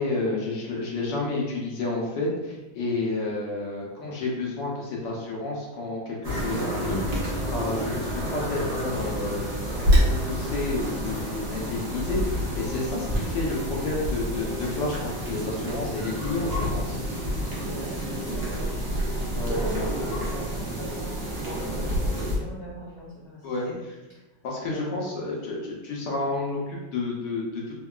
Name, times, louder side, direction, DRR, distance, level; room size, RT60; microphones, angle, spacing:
voice 1, 0.0-17.0 19.3-19.6 23.4-23.7 24.4-27.7, left 2 dB, 70° left, -3 dB, 1.1 m, -30 dB
sound 1, 6.2-22.4, equal, 70° right, 0.6 m, -31 dB
Wind, 9.7-22.0, equal, 50° right, 1.3 m, -31 dB
voice 2, 17.6-18.7 19.5-23.8 24.1-24.2 24.6-25.1, right 1 dB, 45° left, -10 dB, 0.9 m, -41 dB
3.5 x 2.2 x 2.2 m, 1.1 s
omnidirectional pair, 2.2 m